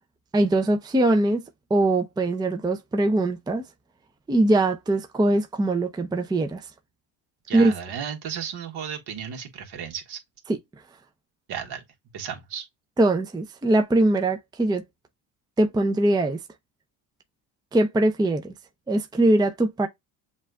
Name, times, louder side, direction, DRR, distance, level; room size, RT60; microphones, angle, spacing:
voice 1, 0.3-1.4 1.7-3.6 4.3-6.6 7.5-7.7 10.5-10.6 13.0-14.8 15.6-16.4 17.7-18.5 18.9-19.9, right 2 dB, 10° right, 0.6 m, -22 dB
voice 2, 7.5-10.2 11.5-11.8 12.1-12.7, right 8 dB, 60° right, 1.7 m, -34 dB
7.2 x 2.6 x 2.2 m
supercardioid pair, 95°, 45 cm